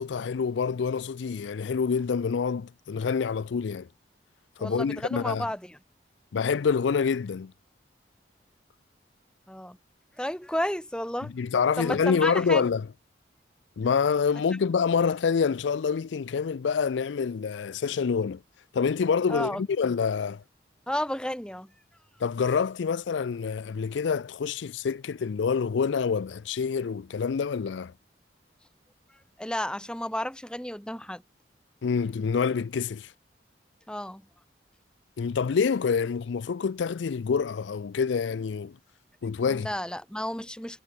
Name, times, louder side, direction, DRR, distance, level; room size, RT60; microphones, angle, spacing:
voice 1, 0.0-3.9 4.6-5.4 6.3-7.5 11.3-12.9 13.8-18.4 18.7-20.4 22.2-27.9 31.8-33.1 35.2-38.8 39.2-39.7, left 6 dB, 80° left, 0.4 m, -27 dB
voice 2, 4.6-5.8 9.5-9.8 10.2-11.3 11.8-12.6 14.5-14.6 19.3-19.6 20.9-21.7 29.4-31.2 33.9-34.2 39.5-40.8, left 1 dB, 5° left, 2.3 m, -32 dB
head